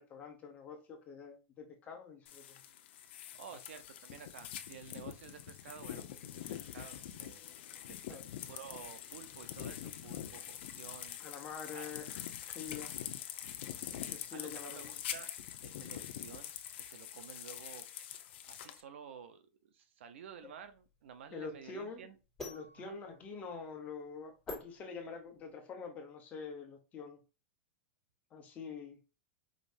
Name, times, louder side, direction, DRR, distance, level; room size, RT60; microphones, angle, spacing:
voice 1, 0.0-2.6 8.1-8.2 11.2-12.1 12.4-13.0 13.9-14.9 20.4-20.5 21.3-22.1 22.4-27.2 28.3-29.0, left 5 dB, 25° left, 1.2 m, -46 dB
sound 1, 2.3-18.8, left 11 dB, 70° left, 0.7 m, -45 dB
voice 2, 3.3-7.4 7.9-8.2 8.5-11.4 11.7-12.3 13.5-15.3 15.6-16.5 16.8-18.1 18.5-22.2 22.7-23.0, right 7 dB, 85° right, 0.7 m, -52 dB
sound 2, 20.3-25.5, left 2 dB, 5° left, 2.1 m, -49 dB
5.1 x 3.1 x 2.6 m
supercardioid pair, 150°, 6 cm